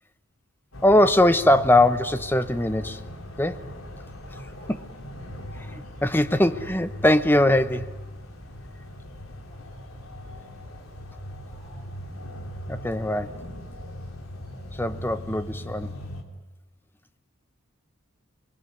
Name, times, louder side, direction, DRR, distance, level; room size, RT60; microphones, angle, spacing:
sound 1, 0.7-16.2, equal, 85° left, 3.6 m, -39 dB
voice 1, 0.8-3.0 3.4-3.7 5.6-7.9 12.7-13.4 14.7-15.9, left 1 dB, 10° left, 11 dB, 0.9 m, -21 dB
voice 2, 9.3-9.6 10.1-10.3 10.6-10.9 11.4-11.9, equal, 25° left, -1 dB, 6.7 m, -56 dB
27.5 x 21.0 x 9.7 m, 1.1 s
head